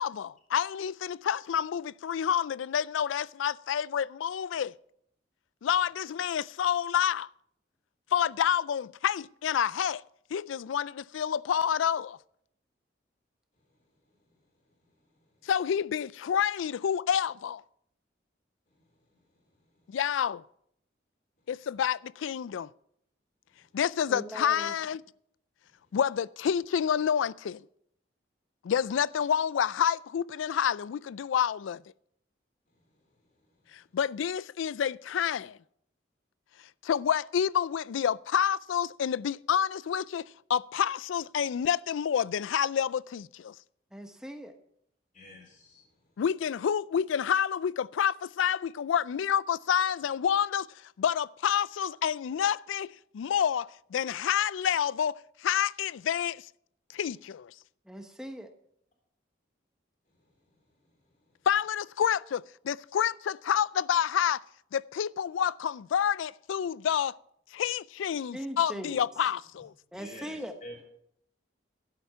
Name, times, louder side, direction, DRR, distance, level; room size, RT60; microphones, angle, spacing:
voice 1, 0.0-4.7 5.6-7.3 8.1-10.0 10.3-12.2 15.5-17.6 19.9-20.4 21.5-22.7 23.7-25.0 25.9-27.6 28.6-31.8 33.7-35.6 36.8-43.5 46.2-50.7 51.0-52.9 53.1-56.4 56.9-57.5 61.5-64.4 64.7-67.1 67.5-69.7, left 8 dB, 90° left, 0.3 m, -28 dB
voice 2, 24.1-24.7 43.9-44.5 57.9-58.5 68.3-69.0 69.9-70.5, equal, 5° right, 1.0 m, -40 dB
voice 3, 45.1-45.8 69.9-70.3 70.6-70.8, left 1 dB, 45° left, 3.7 m, -46 dB
12.0 x 8.6 x 5.7 m
head